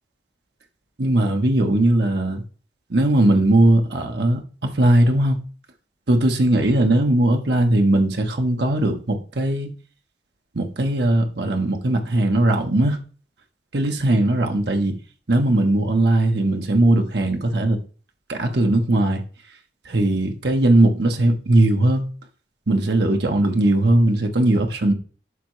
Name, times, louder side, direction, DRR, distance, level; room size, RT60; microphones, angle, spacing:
voice 1, 1.0-2.4 2.9-5.4 6.1-9.7 10.5-13.0 13.7-14.9 15.3-17.8 18.3-19.2 19.8-22.0 22.7-24.9, right 1 dB, 65° right, 1.0 m, -19 dB
11.0 x 3.7 x 3.1 m
head